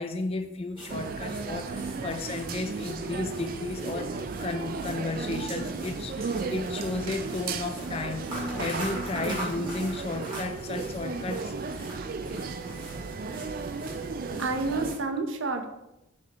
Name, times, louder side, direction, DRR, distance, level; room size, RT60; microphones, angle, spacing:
voice 1, 0.0-11.5, left 3 dB, 30° left, 9 dB, 0.4 m, -34 dB
sound 1, 0.8-15.0, right 1 dB, 25° right, 2.2 m, -42 dB
sound 2, 0.9-15.0, right 4 dB, 45° right, 0.3 m, -35 dB
sound 3, 1.4-7.7, right 3 dB, 90° right, 2.2 m, -53 dB
voice 2, 14.4-15.7, right 3 dB, 70° right, 6 dB, 0.8 m, -29 dB
7.4 x 6.0 x 3.0 m, 0.91 s
head